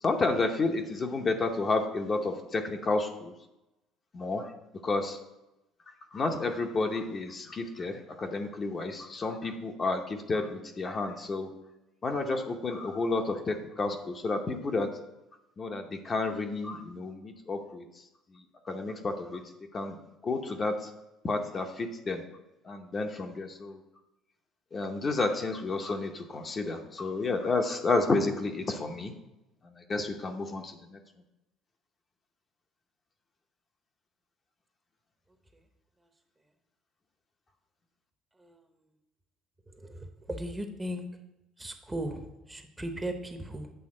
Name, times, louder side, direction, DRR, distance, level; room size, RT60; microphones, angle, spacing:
voice 1, 0.0-3.3 4.1-4.5 4.8-5.2 6.1-11.5 12.0-14.9 15.6-17.8 18.3-19.4 19.7-20.0 20.2-20.9 21.2-22.2 22.6-23.8 24.7-29.1 29.6-31.0, left 3 dB, 30° left, 4 dB, 0.8 m, -31 dB
voice 2, 39.7-41.0 41.6-43.7, right 1 dB, 15° right, 5 dB, 0.8 m, -37 dB
7.9 x 3.5 x 6.3 m, 0.95 s
cardioid pair, 105°, 0 cm